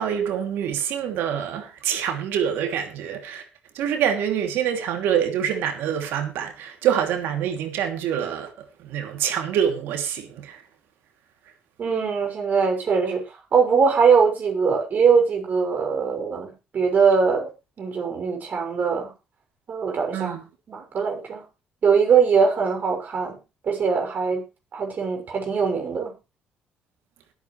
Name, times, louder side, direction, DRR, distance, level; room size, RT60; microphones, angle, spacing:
voice 1, 0.0-3.4 3.7-8.5 8.8-10.6 20.1-20.4, right 9 dB, 80° right, 2.8 m, -25 dB
voice 2, 11.8-13.2 13.5-17.5 17.8-19.1 19.7-20.3 20.7-21.4 21.8-23.4 23.6-24.4 24.7-26.1, right 5 dB, 50° right, 6.4 m, -21 dB
21.0 x 8.8 x 3.3 m
supercardioid pair, 80°, 4 cm